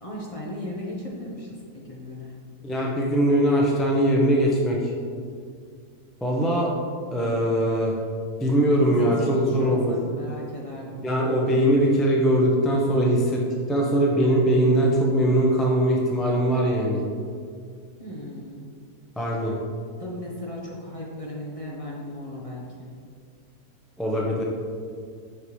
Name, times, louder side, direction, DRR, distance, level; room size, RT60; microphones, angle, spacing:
voice 1, 0.0-2.4 9.0-11.0 18.0-18.7 19.3-19.5 20.0-22.9, left 1 dB, 30° left, -4 dB, 0.7 m, -36 dB
voice 2, 2.6-4.8 6.2-6.7 7.1-7.9 8.4-9.9 11.0-13.4 13.7-17.0 19.2-19.6 24.0-24.4, equal, ahead, -3 dB, 0.4 m, -21 dB
6.4 x 5.5 x 3.2 m, 2.1 s
omnidirectional pair, 1.6 m